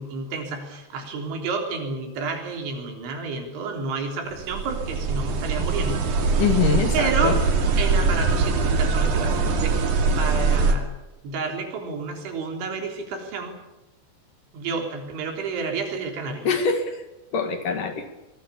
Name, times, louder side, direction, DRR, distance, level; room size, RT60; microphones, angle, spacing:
voice 1, 0.0-6.0 6.9-7.3 7.8-9.8 10.2-10.9 11.2-13.5 14.5-16.5, right 4 dB, 85° right, 3 dB, 6.0 m, -30 dB
sound 1, 4.3-10.7, right 4 dB, 50° right, 3.3 m, -22 dB
voice 2, 6.4-7.4 16.4-17.0 17.3-18.1, left 6 dB, 55° left, 7 dB, 3.0 m, -24 dB
25.0 x 22.0 x 7.1 m, 0.98 s
omnidirectional pair, 5.2 m